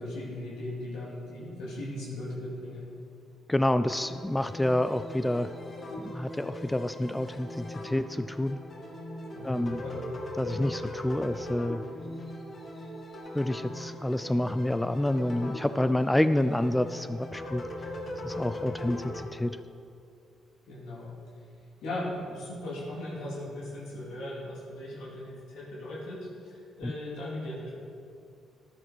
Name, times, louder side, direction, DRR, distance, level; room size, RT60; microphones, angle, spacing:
voice 1, 0.0-2.9 9.3-10.0 20.6-21.1 21.8-27.7, left 1 dB, 85° left, -5 dB, 3.4 m, -38 dB
voice 2, 3.5-5.5 6.0-8.6 9.4-9.8 10.4-11.8 13.3-17.6 18.2-19.6 26.8-26.9, left 1 dB, 10° left, 12 dB, 0.4 m, -28 dB
sound 1, 3.9-19.3, left 1 dB, 40° left, 2.0 m, -40 dB
14.0 x 10.5 x 4.6 m, 2.4 s
cardioid pair, 90°, 0 cm